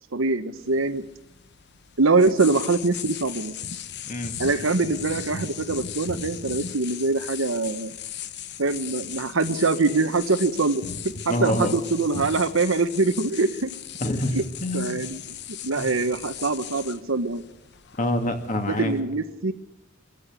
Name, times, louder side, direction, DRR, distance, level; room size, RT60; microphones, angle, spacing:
voice 1, 0.1-1.0 2.0-3.5 4.4-7.9 8.6-10.8 11.2-13.7 14.3-14.4 14.7-15.2 15.5-17.5 18.8-19.5, right 3 dB, 70° right, 11 dB, 1.0 m, -23 dB
sound 1, 0.6-19.0, left 8 dB, 55° left, 1.0 m, -37 dB
voice 2, 11.3-11.7 12.2-12.3 14.0-15.0 15.8-15.9 18.0-18.9, left 1 dB, 40° left, 5 dB, 2.5 m, -26 dB
23.0 x 15.0 x 8.2 m, 0.97 s
head